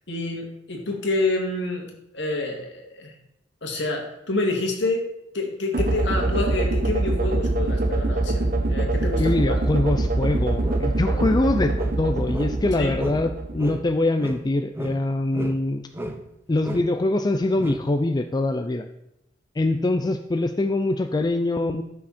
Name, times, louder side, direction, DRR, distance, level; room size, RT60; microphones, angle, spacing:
voice 1, 0.1-3.1 3.6-5.0 5.3-9.6 12.7-12.9, left 2 dB, 70° left, 1 dB, 2.2 m, -28 dB
sound 1, 5.7-13.9, right 2 dB, 50° right, 1.0 m, -24 dB
voice 2, 9.2-15.8 16.5-18.9 19.6-21.8, left 2 dB, 20° left, 7 dB, 0.4 m, -23 dB
sound 2, 10.6-12.7 13.0-13.3 13.6-15.7 15.9-16.3 16.6-17.0 17.6-17.9, right 1 dB, 15° right, 0.7 m, -34 dB
13.5 x 6.1 x 4.3 m, 0.82 s
head